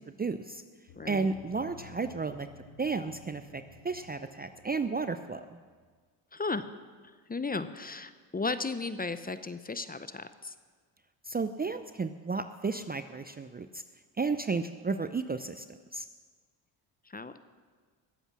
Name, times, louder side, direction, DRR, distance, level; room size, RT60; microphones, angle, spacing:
voice 1, 0.2-0.6 1.1-2.5 2.8-5.4 11.3-13.7 14.2-15.6 15.9-16.0, right 4 dB, 20° right, 10 dB, 0.6 m, -33 dB
sound 1, 0.9-5.7, left 1 dB, 80° left, 3.8 m, -53 dB
voice 2, 1.0-1.3 6.3-6.7 7.3-10.5 17.1-17.4, left 3 dB, 20° left, 12 dB, 0.8 m, -35 dB
21.0 x 8.1 x 6.1 m, 1.5 s
supercardioid pair, 65°, 49 cm